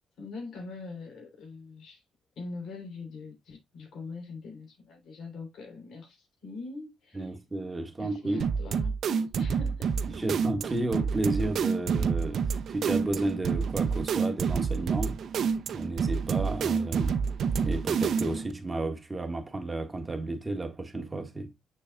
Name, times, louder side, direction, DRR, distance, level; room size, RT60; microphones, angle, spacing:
voice 1, 0.2-2.0 2.4-7.4 8.0-9.9 10.1-10.2, left 3 dB, 70° left, 3.4 m, -43 dB
voice 2, 7.1-8.5 10.1-15.2 15.7-17.2 17.6-21.5, right 2 dB, 20° right, 1.7 m, -32 dB
sound 1, 8.4-18.5, right 6 dB, 65° right, 0.6 m, -28 dB
6.8 x 6.7 x 2.3 m
cardioid pair, 90°, 0 cm